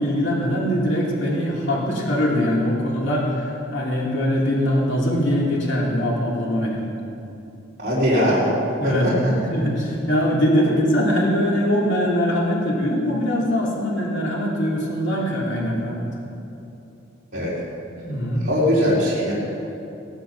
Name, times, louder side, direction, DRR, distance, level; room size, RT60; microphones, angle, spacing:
voice 1, 0.0-6.8 8.8-16.1 18.0-18.5, equal, 65° left, -3 dB, 3.0 m, -22 dB
voice 2, 7.8-8.5 8.8-9.3 17.3-17.5 18.4-19.3, equal, 45° right, -9 dB, 3.6 m, -20 dB
17.0 x 12.0 x 6.0 m, 2.8 s
head